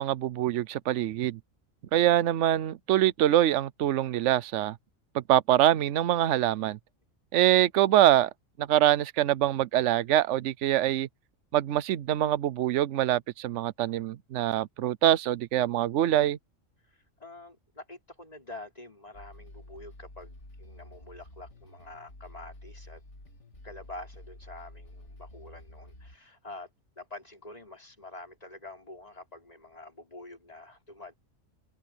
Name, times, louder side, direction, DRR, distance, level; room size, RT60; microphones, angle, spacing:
voice 1, 0.0-1.4 1.9-4.8 5.1-6.8 7.3-8.3 8.6-11.1 11.5-16.4, right 12 dB, 70° right, 1.0 m, -24 dB
voice 2, 16.8-23.0 23.6-26.7 27.0-31.2, left 2 dB, 30° left, 3.9 m, -46 dB
sound 1, 19.1-26.2, left 1 dB, 65° left, 3.7 m, -49 dB
open air
omnidirectional pair, 1.3 m